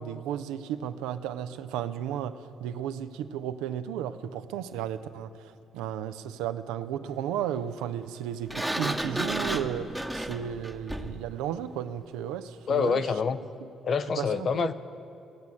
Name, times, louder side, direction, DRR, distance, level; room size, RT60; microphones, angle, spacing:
voice 1, 0.0-13.0 14.2-14.7, right 9 dB, 70° right, 10 dB, 0.5 m, -34 dB
Sliding door, 8.5-11.3, right 1 dB, 10° right, 1.0 m, -32 dB
voice 2, 12.7-13.4 13.8-14.7, left 6 dB, 50° left, 12 dB, 0.6 m, -26 dB
16.0 x 8.1 x 8.8 m, 2.7 s
figure-of-eight pair, 45°, 0 cm